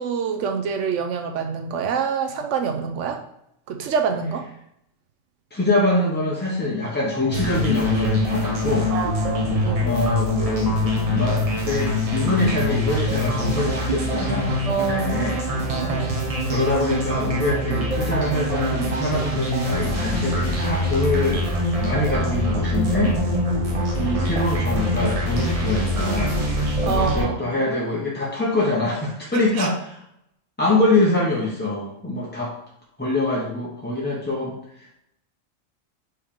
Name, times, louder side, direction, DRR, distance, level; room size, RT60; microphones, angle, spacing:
voice 1, 0.0-3.2 3.7-4.4 8.9-9.9 14.7-15.1 15.5-16.2 26.8-27.6 29.3-29.7, right 6 dB, 70° right, 4 dB, 0.9 m, -26 dB
voice 2, 5.5-8.9 9.8-15.4 16.4-21.5 21.8-23.1 24.0-26.4 26.8-30.0 30.6-32.5 33.0-35.0, left 2 dB, 10° left, -6 dB, 0.5 m, -24 dB
sound 1, 7.3-27.2, left 1 dB, 35° right, 0.7 m, -24 dB
4.6 x 3.2 x 3.5 m, 0.75 s
omnidirectional pair, 1.4 m